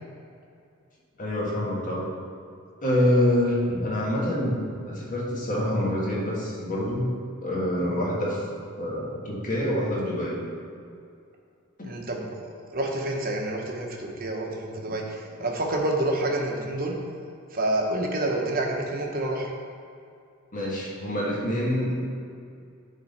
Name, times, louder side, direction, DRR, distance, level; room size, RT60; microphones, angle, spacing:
voice 1, 1.2-2.1 2.8-7.0 7.4-8.5 8.8-10.4 20.5-22.1, left 1 dB, 40° left, -5 dB, 1.6 m, -26 dB
voice 2, 11.8-17.0 17.5-19.5, right 1 dB, 45° right, 0 dB, 1.0 m, -28 dB
10.5 x 3.8 x 4.2 m, 2.4 s
head